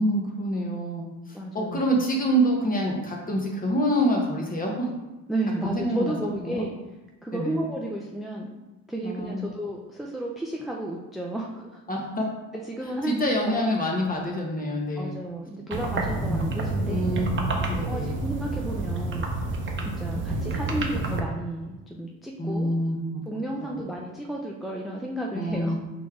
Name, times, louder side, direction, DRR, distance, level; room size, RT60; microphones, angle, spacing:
voice 1, 0.0-4.9 5.6-6.6 7.3-7.6 9.0-9.4 11.9-12.3 13.1-15.2 16.2-16.4 16.9-17.3 17.6-18.1 20.3-20.5 22.4-23.2 23.6-23.8 25.3-25.8, equal, 25° left, 0 dB, 1.1 m, -26 dB
voice 2, 1.3-2.0 5.3-6.7 7.2-8.5 8.9-11.8 12.7-13.8 15.0-17.1 17.9-19.3 19.8-22.7 23.3-25.8, right 1 dB, ahead, -2 dB, 0.4 m, -32 dB
sound 1, 15.7-21.2, right 2 dB, 35° right, 0.8 m, -29 dB
4.1 x 3.4 x 3.6 m, 1.1 s
cardioid pair, 100°, 35 cm